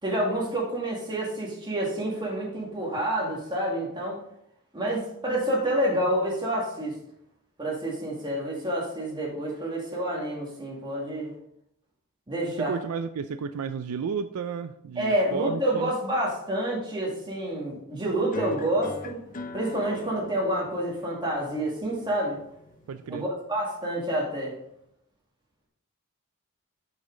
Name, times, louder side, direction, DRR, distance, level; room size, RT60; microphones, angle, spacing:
voice 1, 0.0-4.2 4.7-6.9 7.6-11.3 12.3-12.8 15.0-19.2 19.5-22.4 23.1-24.5, right 1 dB, 20° right, -3 dB, 2.1 m, -28 dB
voice 2, 12.6-15.9 22.9-23.2, right 6 dB, 70° right, 11 dB, 0.4 m, -32 dB
sound 1, 18.3-23.3, left 2 dB, 40° left, 0.7 m, -42 dB
8.0 x 5.6 x 3.9 m, 0.76 s
head